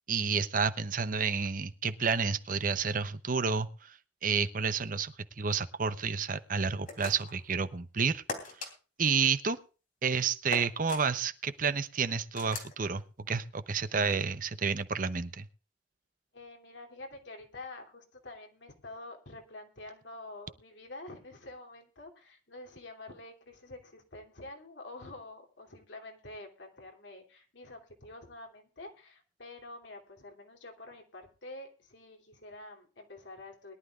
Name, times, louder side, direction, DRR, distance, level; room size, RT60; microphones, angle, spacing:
voice 1, 0.1-8.2 9.0-9.6 10.0-15.5, right 5 dB, 45° right, 12 dB, 0.8 m, -30 dB
sound 1, 6.9-7.4 8.3-8.7 10.5-11.0 12.4-12.7, left 3 dB, 45° left, 3.3 m, -39 dB
voice 2, 16.3-33.7, left 2 dB, 75° left, 3 dB, 3.0 m, -48 dB
22.0 x 11.5 x 2.5 m, 0.35 s
head